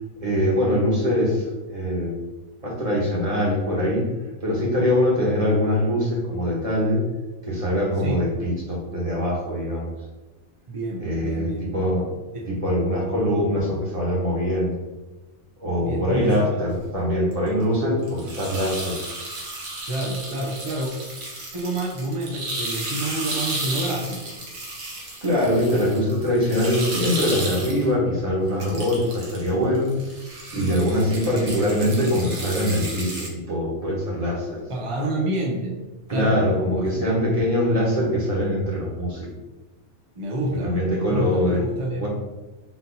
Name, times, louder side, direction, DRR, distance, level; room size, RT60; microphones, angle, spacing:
voice 1, 0.2-2.1 2.6-4.1 4.4-7.0 7.5-9.9 11.0-12.0 12.5-14.7 15.6-19.2 25.2-30.0 30.5-34.6 36.1-39.3 40.6-41.6 42.0-42.1, equal, 30° right, -4 dB, 1.2 m, -23 dB
voice 2, 10.7-11.8 12.3-12.5 15.8-16.5 19.9-20.9 21.5-24.4 30.5-30.8 34.7-35.8 36.1-36.4 36.7-37.1 40.2-40.8 41.1-42.0, right 1 dB, 50° right, 0 dB, 0.4 m, -28 dB
sound 1, 17.3-17.5 18.0-27.9 28.5-29.5 29.8-33.3, right 2 dB, 85° right, 1.4 m, -33 dB
4.2 x 2.7 x 3.8 m, 1.1 s
omnidirectional pair, 1.2 m